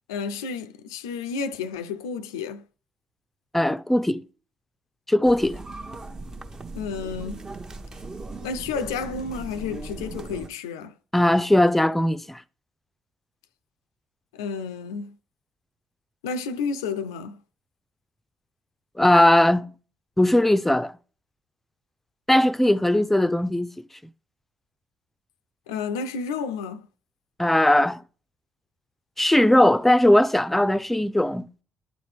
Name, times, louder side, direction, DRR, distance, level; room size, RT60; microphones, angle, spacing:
voice 1, 0.1-2.6 6.7-7.4 8.4-11.0 14.3-15.2 16.2-17.4 25.7-26.9, left 5 dB, 75° left, 0.4 m, -31 dB
voice 2, 3.5-4.2 5.1-5.6 11.1-12.4 19.0-19.7 20.2-20.9 22.3-23.7 27.4-28.0 29.2-31.5, left 1 dB, 10° left, 0.5 m, -19 dB
sound 1, 5.2-10.5, right 3 dB, 30° right, 0.8 m, -38 dB
11.5 x 4.0 x 3.2 m
figure-of-eight pair, 45°, 2 cm